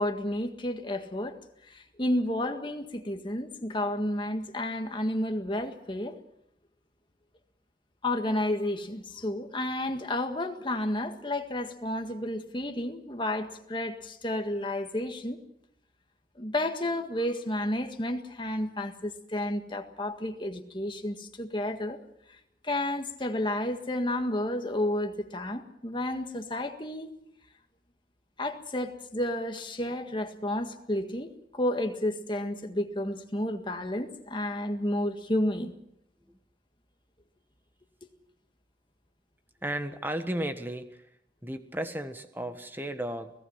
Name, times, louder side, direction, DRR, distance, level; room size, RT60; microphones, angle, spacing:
voice 1, 0.0-1.4 1.7-6.2 8.0-15.4 16.4-22.0 22.6-27.1 28.4-35.7, left 1 dB, 30° left, 6 dB, 1.7 m, -31 dB
voice 2, 39.6-41.0 41.4-43.3, right 1 dB, 10° right, 8 dB, 1.4 m, -34 dB
29.5 x 18.0 x 5.8 m, 0.77 s
head